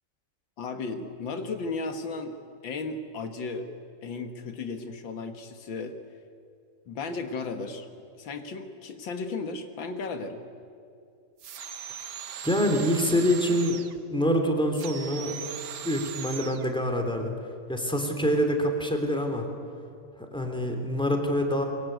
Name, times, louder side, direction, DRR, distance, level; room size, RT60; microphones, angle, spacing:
voice 1, 0.6-2.3 2.6-3.7 4.0-6.0 6.9-7.9 8.2-10.4, left 4 dB, 85° left, 7 dB, 2.3 m, -35 dB
sound 1, 11.4-14.0 14.7-16.7, right 8 dB, 55° right, 1.4 m, -39 dB
voice 2, 12.4-13.8 14.1-15.4 15.8-17.3 17.7-19.4 20.2-21.6, equal, ahead, 4 dB, 3.0 m, -26 dB
23.5 x 23.0 x 9.3 m, 2.5 s
omnidirectional pair, 2.0 m